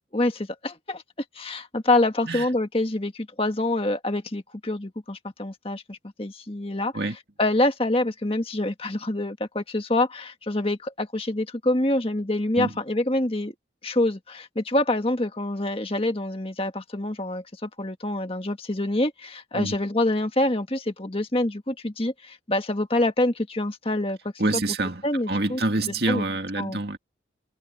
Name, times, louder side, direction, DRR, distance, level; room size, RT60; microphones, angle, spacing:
voice 1, 0.1-1.0 1.3-6.9 7.4-13.5 13.8-24.2 25.0-25.6 26.1-26.3 26.6-26.8, left 1 dB, 30° left, 1.7 m, -26 dB
voice 2, 24.4-25.0 25.3-27.0, right 2 dB, 60° right, 2.3 m, -26 dB
head